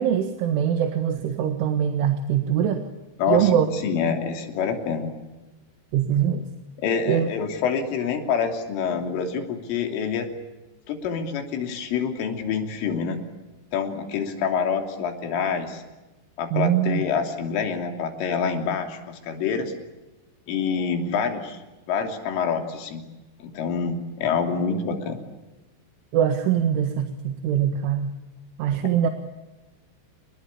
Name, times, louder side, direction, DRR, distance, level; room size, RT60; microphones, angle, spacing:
voice 1, 0.0-2.9 3.3-3.7 5.9-6.4 7.1-7.3 16.5-17.0 26.1-28.1 28.6-29.1, right 9 dB, 80° right, 7 dB, 4.1 m, -22 dB
voice 2, 3.2-3.5 3.8-5.1 6.8-10.3 10.9-13.2 13.7-15.8 16.4-19.7 20.5-21.6 21.9-23.0 23.4-25.2, left 6 dB, 90° left, 5 dB, 5.6 m, -26 dB
29.5 x 20.5 x 8.4 m, 1.1 s
omnidirectional pair, 5.6 m